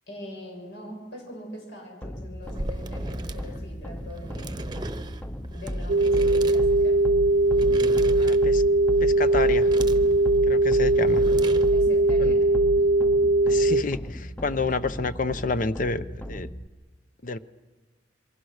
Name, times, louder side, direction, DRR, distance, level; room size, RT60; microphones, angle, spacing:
voice 1, 0.1-4.7 5.5-7.1 11.7-12.5, left 1 dB, 80° left, 1 dB, 7.0 m, -42 dB
sound 1, 2.0-16.7, equal, 10° left, 0.6 m, -35 dB
sound 2, 2.4-12.0, right 1 dB, 25° right, 0.9 m, -37 dB
sound 3, 5.9-13.8, right 2 dB, 70° right, 0.7 m, -20 dB
voice 2, 8.1-8.6 9.0-9.7 10.5-11.2 12.2-12.4 13.4-16.5 17.2-17.4, left 3 dB, 45° left, 13 dB, 0.8 m, -29 dB
27.5 x 23.5 x 6.5 m, 1.4 s
head